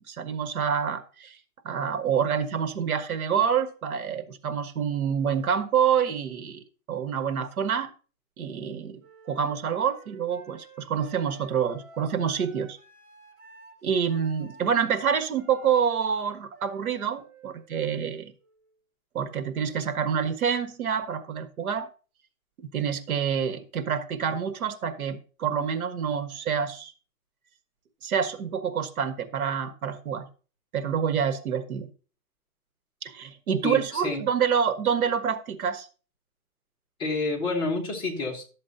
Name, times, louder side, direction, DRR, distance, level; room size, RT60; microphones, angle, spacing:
voice 1, 0.1-1.4 1.6-6.6 6.9-7.9 8.4-9.0 9.3-12.8 13.8-18.3 19.1-21.9 22.6-26.9 28.0-30.3 30.7-31.9 33.0-35.9, right 7 dB, 85° right, 1.5 m, -27 dB
Wind instrument woodwind instrument, 9.0-18.8, right 4 dB, 55° right, 4.2 m, -53 dB
voice 2, 33.6-34.2 37.0-38.4, left 3 dB, 10° left, 1.2 m, -28 dB
12.0 x 7.5 x 2.8 m
hypercardioid pair, 170°, 42 cm